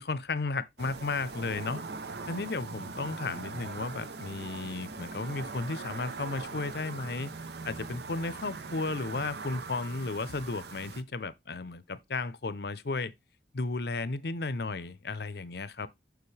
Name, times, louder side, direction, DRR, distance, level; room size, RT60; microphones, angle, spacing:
voice 1, 0.0-1.8 2.3-7.3 7.6-13.1 13.5-15.9, left 3 dB, 60° left, 0.7 m, -34 dB
sound 1, 0.8-11.0, right 4 dB, 65° right, 0.7 m, -41 dB
7.0 x 6.2 x 3.3 m
head